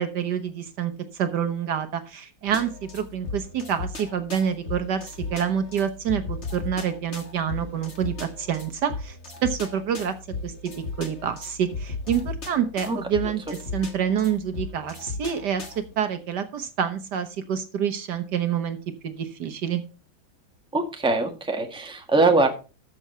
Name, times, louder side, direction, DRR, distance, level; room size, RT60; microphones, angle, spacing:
voice 1, 0.0-9.2 9.4-10.1 10.4-10.7 11.0-13.4 13.7-15.6 16.0-18.8 19.0-19.8, right 8 dB, 65° right, 10 dB, 1.5 m, -27 dB
sound 1, 2.5-15.9, left 3 dB, 35° left, 2.0 m, -36 dB
voice 2, 20.7-22.5, right 3 dB, 5° right, 3 dB, 1.4 m, -22 dB
13.0 x 6.6 x 4.3 m, 0.33 s
omnidirectional pair, 2.1 m